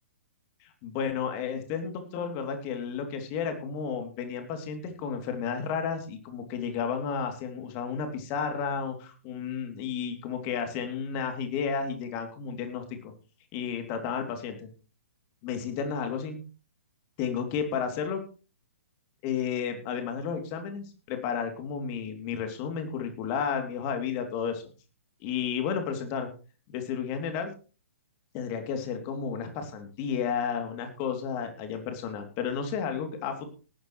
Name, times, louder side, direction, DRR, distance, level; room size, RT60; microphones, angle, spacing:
voice 1, 0.6-13.1 13.5-14.7 15.4-16.4 17.2-18.2 19.2-24.6 25.2-26.3 26.7-27.5 28.3-33.5, left 6 dB, 35° left, 5 dB, 3.0 m, -32 dB
18.5 x 10.0 x 3.2 m, 0.36 s
figure-of-eight pair, 120°, 8 cm